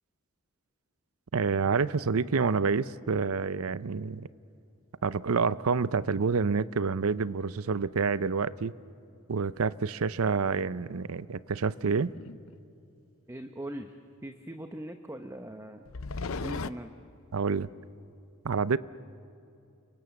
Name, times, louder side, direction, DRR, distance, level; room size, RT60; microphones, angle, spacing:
voice 1, 1.3-4.3 5.0-8.7 9.3-12.1 17.3-17.7 18.4-18.8, right 5 dB, 85° right, 17 dB, 0.6 m, -28 dB
sound 1, 11.7-12.5 15.9-16.7, left 4 dB, 70° left, 0.7 m, -36 dB
voice 2, 13.3-14.0 14.2-15.9 16.3-16.9, right 1 dB, 15° right, 6 dB, 0.9 m, -40 dB
30.0 x 23.5 x 7.1 m, 2.6 s
head